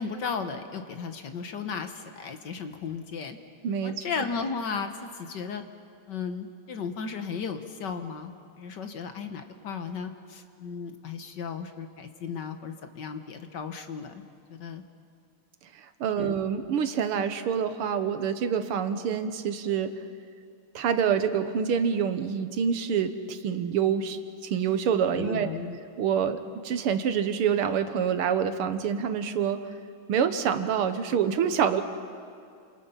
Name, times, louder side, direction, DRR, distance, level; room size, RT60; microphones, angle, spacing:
voice 1, 0.0-3.4 3.8-5.6 6.1-14.2 14.5-14.8 16.2-16.4 25.1-25.8, left 5 dB, 55° left, 7 dB, 1.7 m, -35 dB
voice 2, 3.6-4.0 15.8-19.9 20.8-25.5 26.0-29.6 30.1-31.8, right 7 dB, 80° right, 10 dB, 2.0 m, -26 dB
29.5 x 27.0 x 5.7 m, 2.4 s
omnidirectional pair, 2.4 m